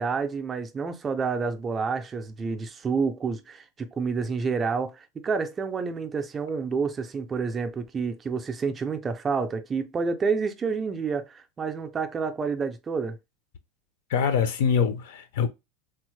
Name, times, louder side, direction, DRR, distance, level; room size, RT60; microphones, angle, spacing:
voice 1, 0.0-13.2, right 5 dB, 15° right, 0.4 m, -29 dB
voice 2, 14.1-15.5, left 7 dB, 75° left, 0.5 m, -24 dB
3.4 x 2.0 x 3.0 m
supercardioid pair, 170°, 0 cm